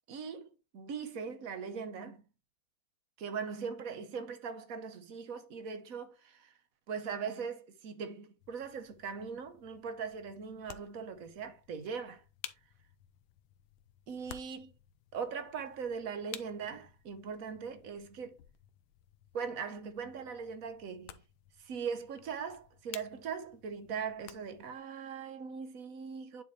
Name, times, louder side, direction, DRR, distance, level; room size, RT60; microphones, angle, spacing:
voice 1, 0.1-2.2 3.2-6.5 6.9-12.2 14.1-14.7 15.1-18.4 19.3-21.2 21.6-26.4, right 6 dB, 55° right, 1.1 m, -40 dB
sound 1, 8.4-24.8, left 12 dB, 80° left, 1.5 m, -54 dB
9.7 x 4.1 x 3.2 m
omnidirectional pair, 2.2 m